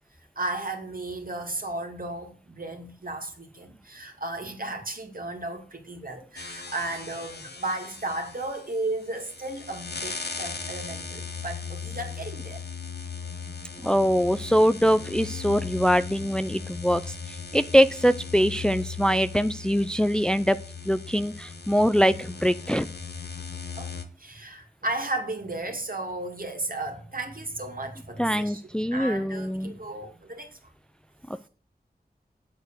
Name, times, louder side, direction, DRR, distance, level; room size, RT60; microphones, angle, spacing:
voice 1, 0.3-12.6 23.8-30.6, right 2 dB, 60° right, 2.7 m, -34 dB
sound 1, 6.4-24.1, left 5 dB, 85° left, 1.2 m, -38 dB
voice 2, 13.8-20.6 20.9-22.9 28.2-29.7, equal, 5° left, 0.5 m, -23 dB
9.0 x 8.1 x 6.5 m
wide cardioid pair, 55°, 17 cm